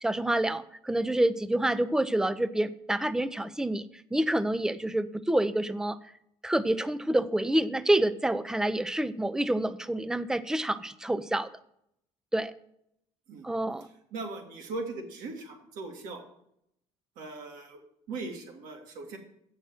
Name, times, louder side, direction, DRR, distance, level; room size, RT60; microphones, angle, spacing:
voice 1, 0.0-3.9 4.1-6.0 6.4-11.5 12.3-12.5 13.4-13.9, right 1 dB, 5° right, 15 dB, 0.5 m, -27 dB
voice 2, 14.1-16.2 17.2-17.8 18.1-19.2, right 3 dB, 70° right, 3 dB, 2.0 m, -39 dB
7.7 x 6.4 x 7.4 m, 0.75 s
hypercardioid pair, 70°, 14 cm